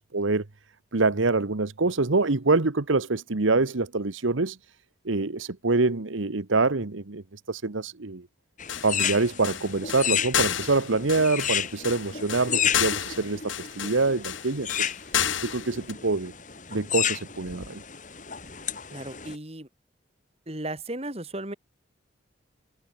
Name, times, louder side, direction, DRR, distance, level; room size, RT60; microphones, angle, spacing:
voice 1, 0.1-0.4 0.9-4.6 5.0-8.3 8.8-14.9 15.4-16.3 16.7-17.8, right 3 dB, 85° right, 1.2 m, -25 dB
sound 1, 8.6-19.4, left 9 dB, 40° left, 4.3 m, -32 dB
sound 2, 8.7-15.9, left 9 dB, 85° left, 2.2 m, -30 dB
voice 2, 18.9-19.7 20.5-21.5, right 1 dB, 30° right, 2.8 m, -35 dB
head